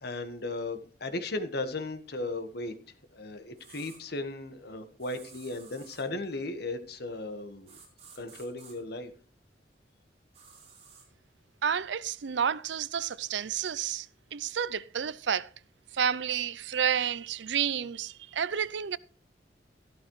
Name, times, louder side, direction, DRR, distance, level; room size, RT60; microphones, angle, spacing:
voice 1, 0.0-2.7 3.1-7.8 8.1-9.1, left 2 dB, 60° left, 1.5 m, -36 dB
sound 1, 3.6-4.0 5.0-6.1 7.7-8.7 10.3-11.1, right 5 dB, 35° right, 4.1 m, -53 dB
voice 2, 11.6-14.1 14.3-15.5 15.9-19.0, right 8 dB, 75° right, 0.5 m, -30 dB
14.0 x 13.0 x 3.2 m
head